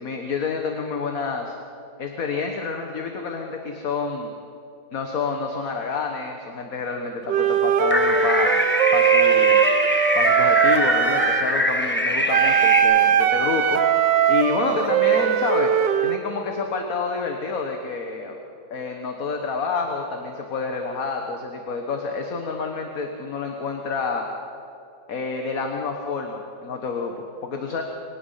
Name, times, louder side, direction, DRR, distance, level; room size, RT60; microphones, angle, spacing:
voice 1, 0.0-1.6 2.0-4.3 4.9-8.5 8.9-9.6 10.1-13.8 14.3-15.7 16.0-18.4 18.7-24.2 25.1-27.8, left 4 dB, 55° left, 3 dB, 1.8 m, -28 dB
Wind instrument woodwind instrument, 7.3-11.5 12.3-16.2, right 8 dB, 85° right, 1.7 m, -20 dB
sound 1, 7.9-12.8, left 1 dB, 5° left, 1.3 m, -23 dB
24.0 x 19.0 x 5.8 m, 2.7 s
omnidirectional pair, 1.9 m